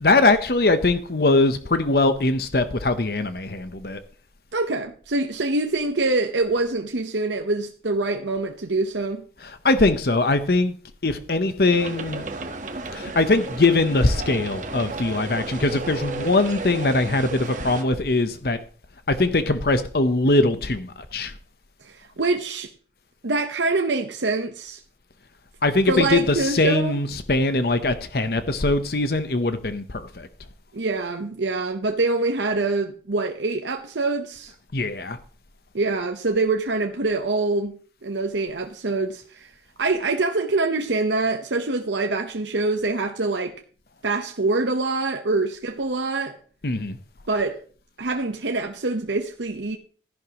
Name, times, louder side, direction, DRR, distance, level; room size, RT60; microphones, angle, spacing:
voice 1, 0.0-4.0 9.4-10.7 11.0-12.2 12.9-18.6 19.1-21.3 25.6-30.3 34.7-35.2 46.6-47.0, left 2 dB, 60° left, 0.9 m, -21 dB
voice 2, 4.5-9.2 21.8-22.7 23.2-24.8 25.9-27.0 30.7-34.5 35.7-37.8 38.0-39.5 39.8-43.6 44.0-46.4 47.3-47.6 48.0-49.8, right 3 dB, 90° right, 1.0 m, -25 dB
sound 1, 11.7-17.8, right 2 dB, 45° right, 1.3 m, -33 dB
14.0 x 11.0 x 3.0 m
head